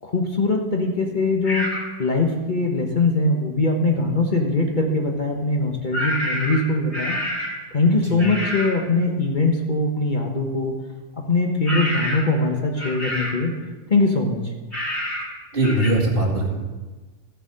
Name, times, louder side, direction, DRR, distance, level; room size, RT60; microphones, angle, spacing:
voice 1, 0.0-1.7 2.0-7.2 7.7-10.7 11.3-13.5 13.9-14.5, left 3 dB, 40° left, 1 dB, 1.3 m, -21 dB
sound 1, 1.4-1.9 5.9-7.6 8.2-8.8 11.7-12.4 12.8-13.4 14.7-15.3 15.6-15.9, equal, 65° left, 3.1 m, -27 dB
voice 2, 15.5-16.6, right 1 dB, 45° right, -2 dB, 2.3 m, -21 dB
14.5 x 4.9 x 7.6 m, 1.3 s
omnidirectional pair, 1.3 m